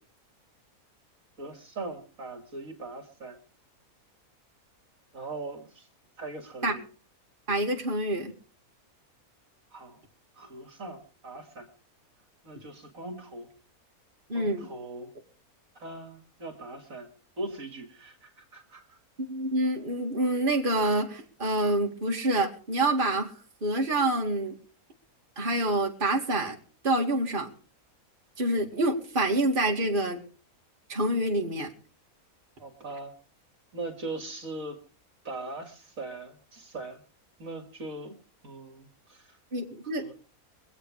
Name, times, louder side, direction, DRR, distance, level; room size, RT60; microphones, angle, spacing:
voice 1, 1.4-3.4 5.1-5.9 6.2-6.8 9.7-10.0 10.4-11.7 12.4-13.5 14.3-15.1 15.8-17.1 17.4-19.0 32.6-33.1 33.7-34.8 35.2-37.0 37.4-38.2 38.4-39.4 39.8-40.1, right 2 dB, 65° right, 5 dB, 2.6 m, -40 dB
voice 2, 7.5-8.3 14.3-14.7 19.3-23.3 23.6-24.6 25.4-26.6 26.8-27.5 28.4-30.2 30.9-31.7 39.5-40.0, right 1 dB, 35° right, 1 dB, 2.5 m, -27 dB
24.5 x 8.4 x 4.9 m, 0.40 s
omnidirectional pair, 1.5 m